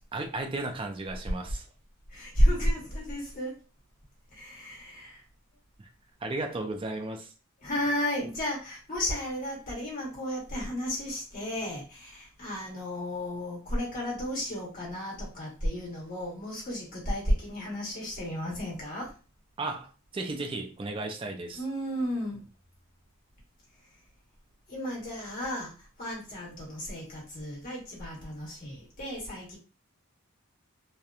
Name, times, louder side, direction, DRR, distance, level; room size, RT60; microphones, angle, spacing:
voice 1, 0.1-1.7 5.8-5.9 6.2-7.3 19.6-21.6, right 2 dB, 25° right, 3 dB, 0.4 m, -34 dB
voice 2, 2.1-3.5 4.3-5.2 7.6-19.1 21.5-22.5 24.7-29.6, equal, 40° left, -4 dB, 1.3 m, -32 dB
2.8 x 2.1 x 2.3 m, 0.34 s
head